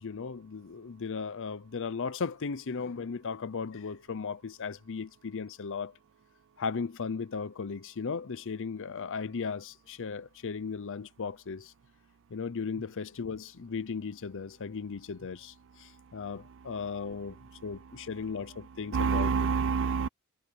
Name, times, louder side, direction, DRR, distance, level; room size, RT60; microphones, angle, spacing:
voice 1, 0.0-5.9 6.6-11.7 12.3-19.3, left 5 dB, 60° left, 0.6 m, -36 dB
voice 2, 18.9-20.1, right 5 dB, 60° right, 0.5 m, -28 dB
head